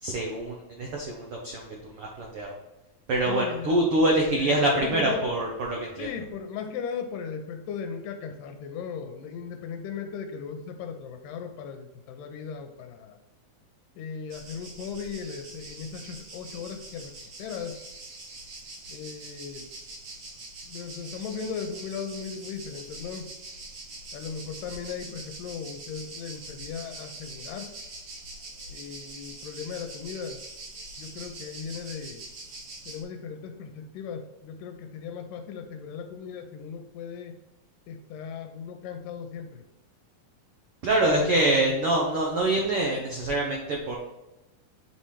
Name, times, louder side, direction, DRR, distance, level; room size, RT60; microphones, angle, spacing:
voice 1, 0.0-2.5 3.1-6.1 40.8-44.0, right 1 dB, 80° right, 0 dB, 1.3 m, -25 dB
voice 2, 3.3-3.7 4.3-5.2 6.0-13.2 14.0-17.8 18.9-19.7 20.7-23.3 24.1-27.7 28.7-30.4 31.0-32.2 32.9-37.4 37.9-39.6 41.0-41.6, left 6 dB, 90° left, 6 dB, 2.3 m, -37 dB
sound 1, 14.3-33.0, right 2 dB, 55° right, 2.0 m, -43 dB
7.7 x 4.3 x 3.2 m, 1.0 s
omnidirectional pair, 3.8 m